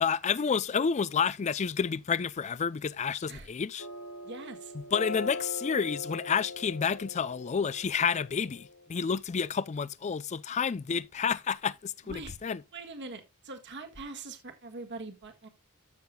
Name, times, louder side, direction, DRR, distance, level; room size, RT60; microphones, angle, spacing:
voice 1, 0.0-3.9 4.7-12.6, left 6 dB, 30° left, 0.4 m, -30 dB
sound 1, 3.8-8.9, left 3 dB, 65° left, 1.6 m, -41 dB
voice 2, 4.2-4.7 12.1-12.3 12.7-15.5, right 3 dB, 55° right, 1.6 m, -42 dB
13.5 x 6.6 x 2.2 m
head